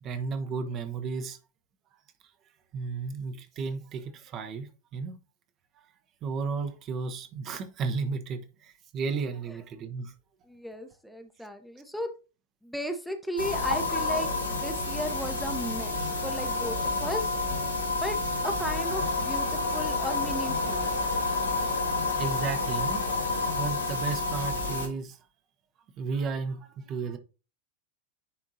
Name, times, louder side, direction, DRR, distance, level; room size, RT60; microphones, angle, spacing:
voice 1, 0.0-1.4 2.7-5.2 6.2-10.1 18.7-18.8 22.2-25.2 26.0-27.2, right 5 dB, 35° right, 0.8 m, -34 dB
voice 2, 10.5-12.1 12.6-17.3 18.0-18.2 18.4-21.1, equal, ahead, 0.7 m, -35 dB
sound 1, 13.4-24.9, left 3 dB, 80° left, 1.5 m, -29 dB
9.7 x 3.6 x 2.7 m
figure-of-eight pair, 90°, 0 cm